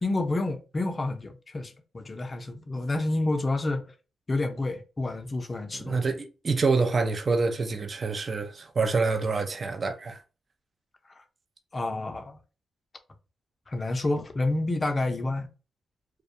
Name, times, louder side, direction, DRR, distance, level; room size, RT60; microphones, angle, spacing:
voice 1, 0.0-3.9 4.3-6.1 11.7-12.4 13.7-15.5, left 2 dB, 35° left, 0.5 m, -29 dB
voice 2, 5.7-10.2, right 4 dB, 40° right, 0.4 m, -27 dB
2.2 x 2.1 x 2.7 m
cardioid pair, 75°, 0 cm